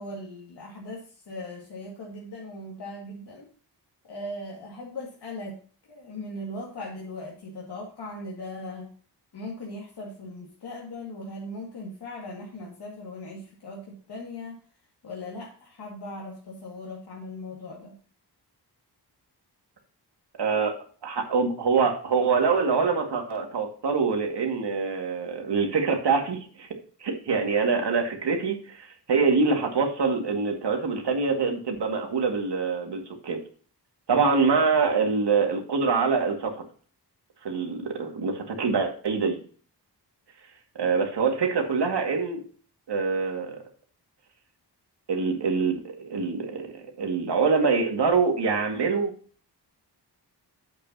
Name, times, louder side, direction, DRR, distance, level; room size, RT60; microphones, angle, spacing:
voice 1, 0.0-3.5 4.0-8.9 9.3-14.6 15.0-18.0, left 1 dB, 75° left, -3 dB, 2.2 m, -39 dB
voice 2, 20.4-20.7 21.0-26.7 27.0-33.4 34.1-36.6 37.4-39.4 40.8-42.4 42.9-43.6 45.1-49.1, right 5 dB, 80° right, 3 dB, 2.1 m, -25 dB
9.1 x 8.4 x 2.8 m, 0.42 s
wide cardioid pair, 170°, 41 cm